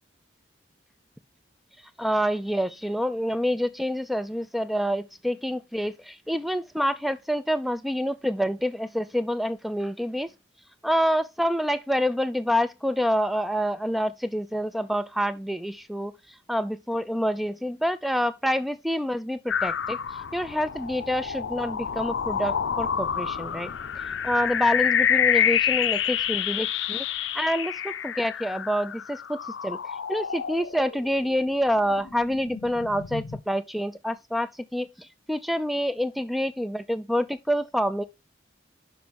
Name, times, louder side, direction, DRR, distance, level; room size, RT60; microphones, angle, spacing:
voice 1, 2.0-10.3 10.8-16.1 16.5-23.7 24.0-29.4 29.6-29.8 30.1-38.0, equal, ahead, 0.3 m, -27 dB
sound 1, 19.5-31.3 31.8-33.4, left 8 dB, 75° left, 0.5 m, -28 dB
5.8 x 5.2 x 5.1 m
head